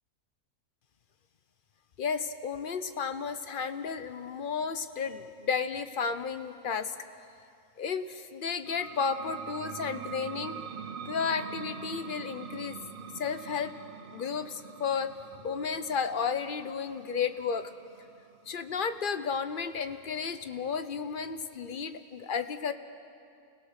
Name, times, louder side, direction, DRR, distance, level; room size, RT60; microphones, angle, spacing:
voice 1, 2.0-7.0 7.8-10.6 11.0-12.8 13.1-13.7 14.1-15.1 15.4-17.7 18.5-22.7, left 6 dB, 45° left, 10 dB, 0.7 m, -33 dB
sound 1, 8.7-19.9, right 7 dB, 50° right, 0.6 m, -44 dB
29.5 x 17.0 x 6.5 m, 2.4 s
omnidirectional pair, 1.6 m